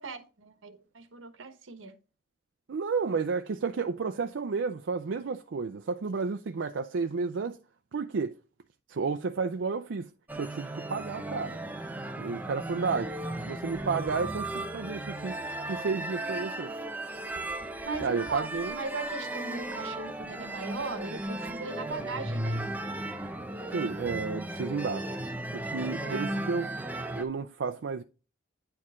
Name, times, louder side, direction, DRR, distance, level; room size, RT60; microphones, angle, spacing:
voice 1, 0.0-1.9 17.8-18.5 18.8-22.7 26.0-26.3, right 3 dB, 90° right, 1.2 m, -39 dB
voice 2, 2.7-7.6 7.9-8.3 8.9-10.1 10.4-11.6 12.2-13.1 13.5-15.4 15.7-16.7 18.0-18.8 23.7-25.2 25.5-26.7 27.2-28.0, right 4 dB, 70° right, 0.4 m, -32 dB
sound 1, 10.3-27.2, right 1 dB, 10° right, 0.6 m, -36 dB
9.6 x 4.6 x 3.6 m
head